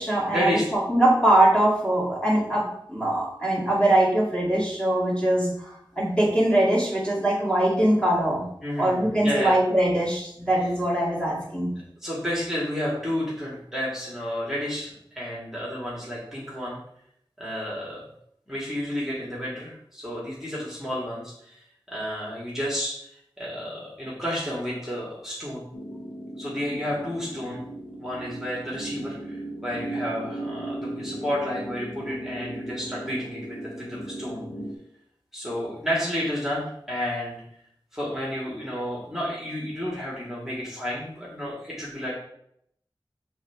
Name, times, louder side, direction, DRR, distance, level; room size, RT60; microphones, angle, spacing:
voice 1, 0.0-8.4 8.8-11.7, right 1 dB, 10° left, -5 dB, 2.0 m, -22 dB
voice 2, 8.6-9.6 12.0-16.8 17.4-18.0 18.5-21.6 21.9-23.0 23.4-25.6 26.4-27.6 28.0-34.4 35.3-37.4 37.9-42.1, equal, 5° right, -6 dB, 1.8 m, -31 dB
sound 1, 25.7-34.7, right 1 dB, 90° left, 0.7 m, -36 dB
6.2 x 3.3 x 4.7 m, 0.73 s
wide cardioid pair, 65°, 9 cm